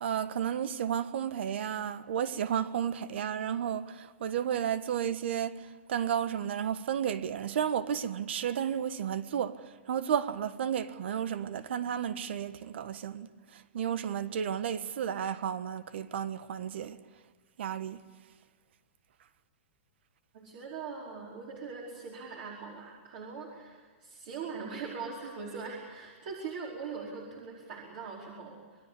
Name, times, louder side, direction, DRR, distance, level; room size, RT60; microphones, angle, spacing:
voice 1, 0.0-5.5 5.9-9.6 9.9-13.3 13.7-17.0 17.6-18.0, right 9 dB, 60° right, 1.4 m, -32 dB
voice 2, 20.3-28.6, right 5 dB, 45° right, 5.0 m, -41 dB
28.0 x 21.0 x 8.5 m
hypercardioid pair, 170°, 7 cm